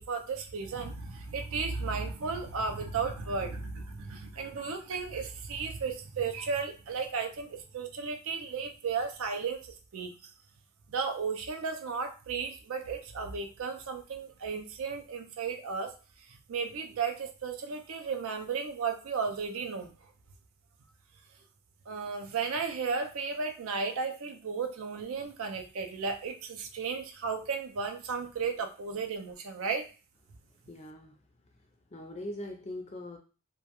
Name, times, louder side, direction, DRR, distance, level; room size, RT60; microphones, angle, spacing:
voice 1, 0.0-10.1 10.9-15.9 16.3-19.9 21.9-29.9, right 5 dB, 65° right, 5 dB, 0.4 m, -34 dB
voice 2, 30.7-31.2 31.9-33.2, left 1 dB, 30° left, 4 dB, 0.4 m, -41 dB
2.2 x 2.1 x 2.9 m, 0.34 s
head